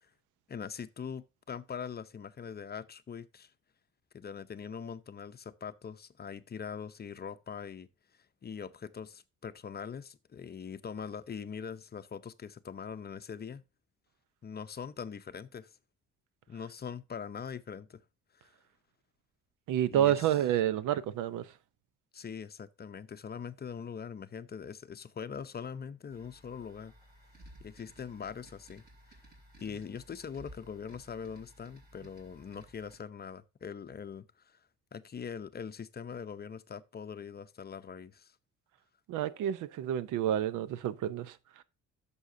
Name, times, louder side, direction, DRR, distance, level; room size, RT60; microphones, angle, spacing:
voice 1, 0.5-3.5 4.1-7.9 8.4-13.6 14.4-15.8 16.5-18.0 18.3-18.5 19.9-20.4 22.1-26.9 27.6-28.8 29.6-34.6 34.9-38.3, left 6 dB, 30° left, 0.6 m, -42 dB
voice 2, 19.7-21.5 39.1-41.6, right 11 dB, 85° right, 0.7 m, -29 dB
sound 1, 26.1-33.0, right 1 dB, 35° right, 4.6 m, -56 dB
11.5 x 7.0 x 2.6 m
cardioid pair, 90°, 30 cm